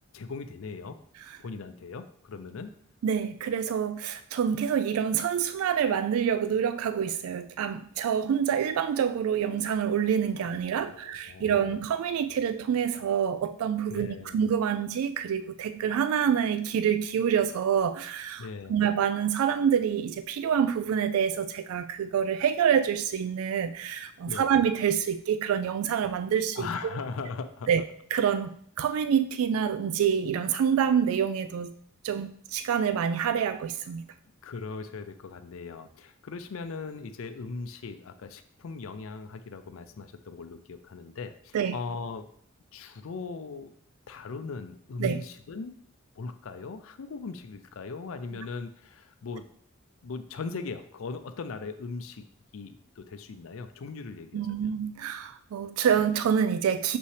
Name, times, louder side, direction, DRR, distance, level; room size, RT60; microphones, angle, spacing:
voice 1, 0.1-1.0 1.4-2.7 10.4-11.7 13.9-14.4 18.4-18.9 24.3-24.5 26.6-27.7 34.4-42.3 42.7-43.7 44.1-45.7 46.2-49.5 50.0-52.3 52.5-54.7, left 4 dB, 70° left, 9 dB, 0.4 m, -39 dB
voice 2, 3.0-26.7 27.7-27.8 28.1-31.7 32.0-34.0 41.5-41.8 45.0-45.2 54.3-57.0, right 8 dB, 80° right, 12 dB, 0.3 m, -27 dB
6.2 x 5.5 x 3.2 m, 0.62 s
head